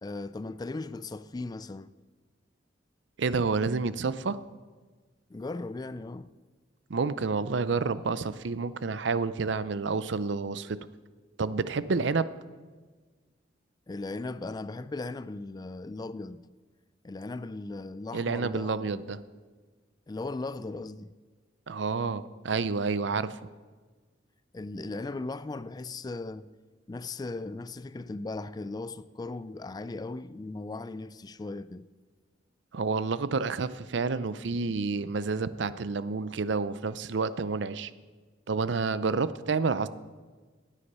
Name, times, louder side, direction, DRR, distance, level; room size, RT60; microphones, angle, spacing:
voice 1, 0.0-1.9 5.3-6.3 13.9-16.4 17.0-19.1 20.1-21.1 24.5-26.5 26.9-31.9, left 3 dB, 20° left, 0.3 m, -37 dB
voice 2, 3.2-4.4 6.9-10.8 11.4-12.3 18.1-19.2 21.7-23.4 32.7-37.9 38.5-39.9, right 4 dB, 65° right, 0.6 m, -29 dB
16.5 x 9.9 x 5.5 m
head